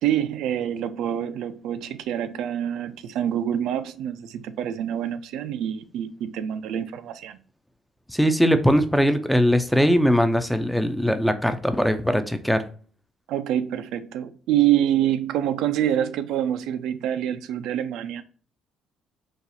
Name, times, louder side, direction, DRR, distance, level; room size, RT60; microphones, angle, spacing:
voice 1, 0.0-7.4 13.3-18.2, right 11 dB, 80° right, 0.3 m, -26 dB
voice 2, 8.1-12.6, equal, ahead, 0.3 m, -20 dB
4.0 x 2.4 x 2.6 m
cardioid pair, 145°, 0 cm